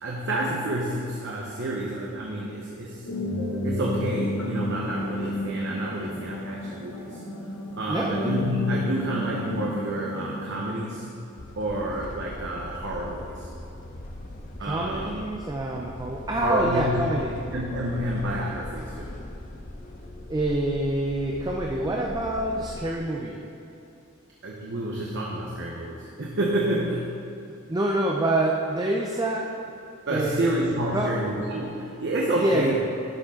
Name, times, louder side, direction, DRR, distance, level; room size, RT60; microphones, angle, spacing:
voice 1, 0.0-3.1 3.6-7.2 7.8-11.1 11.6-13.5 14.6-15.2 16.4-17.0 17.5-19.1 24.4-27.2 30.1-32.7, right 1 dB, 60° right, -3 dB, 1.0 m, -29 dB
sound 1, 3.1-10.6, left 1 dB, 80° left, 1.3 m, -31 dB
voice 2, 7.9-8.2 14.6-17.4 20.3-23.4 27.7-29.6 30.1-30.5 30.9-31.2 32.3-32.7, right 1 dB, 20° right, -1 dB, 0.6 m, -26 dB
sound 2, 11.4-23.0, left 1 dB, 40° left, 0.7 m, -40 dB
12.0 x 6.6 x 3.8 m, 2.8 s
head